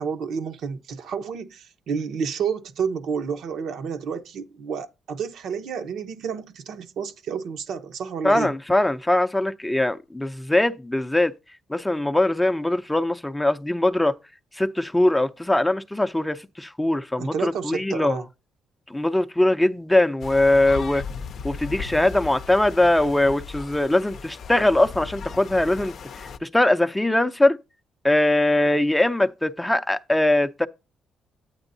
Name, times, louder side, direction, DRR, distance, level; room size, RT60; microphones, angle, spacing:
voice 1, 0.0-8.5 17.2-18.3, right 6 dB, 75° right, 0.9 m, -30 dB
voice 2, 8.2-11.3 11.7-14.2 14.6-18.2 18.9-21.0 21.4-27.6 28.0-30.7, left 1 dB, 10° left, 0.5 m, -21 dB
sound 1, 20.2-26.4, left 6 dB, 60° left, 0.6 m, -37 dB
9.0 x 8.7 x 2.7 m
cardioid pair, 90°, 0 cm